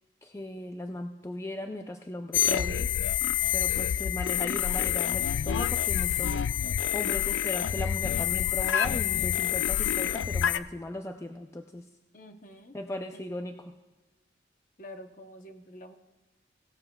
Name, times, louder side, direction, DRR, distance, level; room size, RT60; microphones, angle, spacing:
voice 1, 0.2-2.9 3.5-6.4 6.9-11.9 12.7-13.7, left 1 dB, 15° left, 5 dB, 0.3 m, -37 dB
sound 1, 2.3-10.6, left 10 dB, 85° left, 0.4 m, -27 dB
voice 2, 12.1-12.7 13.1-13.2 14.8-16.0, left 1 dB, 45° left, 6 dB, 0.9 m, -47 dB
17.5 x 13.0 x 2.3 m, 1.1 s
head